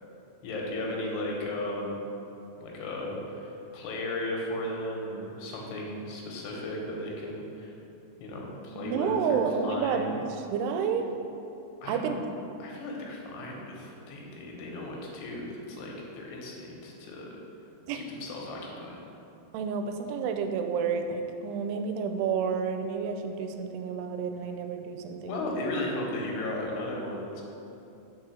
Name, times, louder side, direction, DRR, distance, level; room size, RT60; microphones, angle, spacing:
voice 1, 0.4-2.0 2.6-7.8 8.2-10.2 11.8-12.2 12.6-17.3 17.9-19.0 25.3-27.4, left 1 dB, 90° left, -2 dB, 3.1 m, -35 dB
voice 2, 8.7-10.0 10.5-11.0 11.9-12.2 17.9-18.0 19.5-25.5, right 6 dB, 90° right, 6 dB, 2.6 m, -30 dB
6.0 x 4.7 x 6.2 m, 2.9 s
omnidirectional pair, 4.6 m